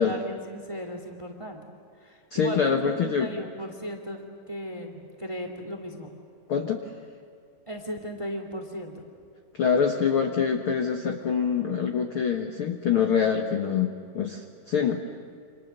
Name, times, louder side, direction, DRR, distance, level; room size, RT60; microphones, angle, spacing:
voice 1, 0.0-1.6 2.0-6.1 7.7-8.9, equal, 10° right, 4 dB, 1.7 m, -36 dB
voice 2, 2.3-3.3 6.5-6.8 9.5-15.0, left 7 dB, 55° left, 4 dB, 1.5 m, -25 dB
29.5 x 26.5 x 6.8 m, 2.4 s
omnidirectional pair, 4.1 m